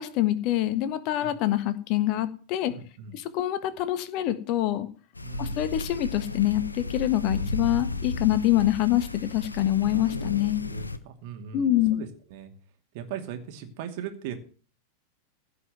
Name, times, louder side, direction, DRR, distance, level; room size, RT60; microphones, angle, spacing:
voice 1, 0.0-2.7 3.1-4.9 5.4-10.6 11.5-12.0, left 13 dB, 40° left, 13 dB, 1.3 m, -25 dB
voice 2, 2.7-3.2 5.2-5.6 10.7-12.5 12.9-14.4, right 8 dB, 50° right, 5 dB, 2.6 m, -39 dB
sound 1, 5.1-11.0, left 2 dB, 80° left, 1.0 m, -34 dB
16.0 x 5.7 x 9.3 m, 0.41 s
figure-of-eight pair, 90°, 0 cm